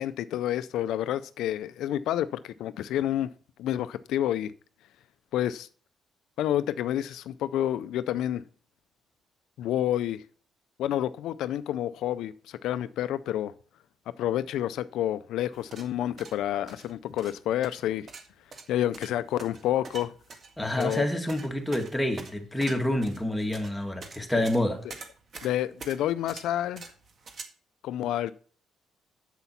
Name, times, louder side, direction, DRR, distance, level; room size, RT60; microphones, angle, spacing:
voice 1, 0.0-3.3 3.6-4.5 5.3-5.7 6.4-8.4 9.6-10.2 10.8-13.5 14.1-18.1 18.7-20.1 20.8-21.1 24.3-24.4 25.4-26.8 27.8-28.3, left 12 dB, 80° left, 0.5 m, -29 dB
sound 1, 15.5-27.4, right 4 dB, 45° right, 1.8 m, -45 dB
voice 2, 20.6-24.8, left 1 dB, 5° left, 2.1 m, -28 dB
8.2 x 8.0 x 5.8 m
cardioid pair, 115°, 0 cm